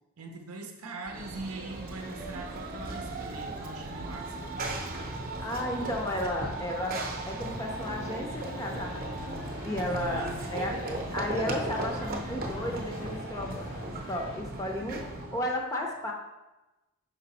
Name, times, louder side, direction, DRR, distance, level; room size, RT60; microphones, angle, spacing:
voice 1, 0.2-4.8 9.9-10.4, right 3 dB, 80° right, 3 dB, 0.6 m, -41 dB
Run / Train, 1.1-15.5, right 2 dB, 40° right, 0.8 m, -37 dB
voice 2, 5.4-16.1, left 1 dB, 15° left, 1 dB, 0.6 m, -34 dB
sound 1, 7.6-14.4, left 3 dB, 80° left, 0.5 m, -48 dB
5.4 x 4.7 x 4.1 m, 1.0 s
head